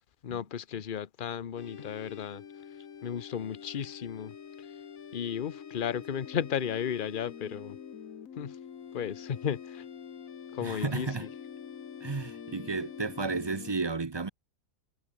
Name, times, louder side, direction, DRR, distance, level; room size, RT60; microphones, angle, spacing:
voice 1, 0.2-2.5 3.0-4.7 5.1-7.8 8.4-8.6 8.9-9.8 10.5-11.3, left 8 dB, 40° left, 0.9 m, -34 dB
sound 1, 1.6-13.7, left 7 dB, 60° left, 1.6 m, -45 dB
voice 2, 10.6-11.3 12.0-14.3, right 4 dB, 30° right, 0.4 m, -33 dB
omnidirectional pair, 1.7 m